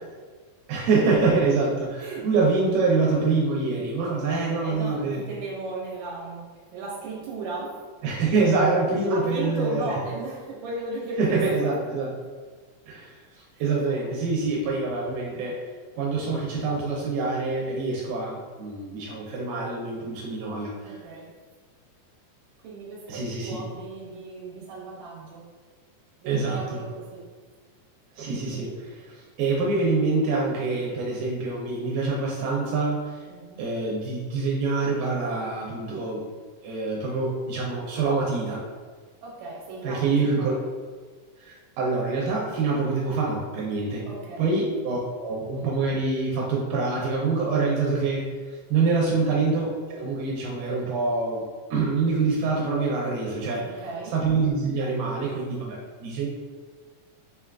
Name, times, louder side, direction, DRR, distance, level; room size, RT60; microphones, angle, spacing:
voice 1, 0.7-5.2 8.0-9.9 11.2-12.1 12.9-13.1 13.6-15.6 16.0-21.0 23.1-23.6 26.3-26.8 28.2-33.2 33.6-36.2 36.6-38.6 39.8-40.6 41.4-44.1 44.4-51.4 51.7-53.8 54.1-56.3, right 3 dB, 85° right, -3 dB, 2.1 m, -25 dB
voice 2, 4.6-6.5 6.7-7.8 9.1-11.7 13.5-13.9 20.8-21.3 22.6-25.5 26.2-27.2 33.3-33.6 35.2-35.4 39.2-40.6 44.1-44.5 53.6-54.2, right 2 dB, 70° right, -5 dB, 2.1 m, -36 dB
5.4 x 2.3 x 2.3 m, 1.5 s
omnidirectional pair, 3.7 m